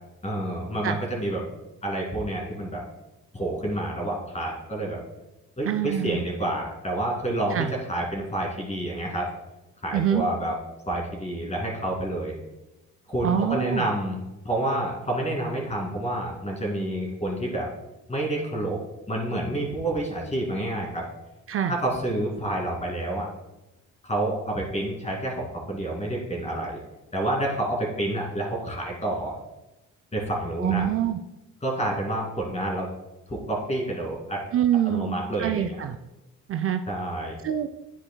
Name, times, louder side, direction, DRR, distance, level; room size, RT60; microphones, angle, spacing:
voice 1, 0.2-1.4 1.8-2.8 3.3-5.0 5.6-9.3 9.8-10.5 10.9-12.3 13.1-17.7 18.1-18.8 19.1-21.0 21.7-23.3 24.0-26.8 27.1-29.4 30.1-30.8 31.6-32.9 33.3-34.4 34.8-35.8 36.9-37.4, right 1 dB, 20° left, -1 dB, 2.3 m, -28 dB
voice 2, 5.6-6.2 7.5-7.7 9.9-10.2 13.2-13.9 21.5-21.8 30.6-31.2 34.5-36.0 36.5-36.8 37.4-37.7, right 9 dB, 50° right, 7 dB, 0.4 m, -25 dB
11.0 x 4.8 x 2.2 m, 1.0 s
cardioid pair, 90°, 30 cm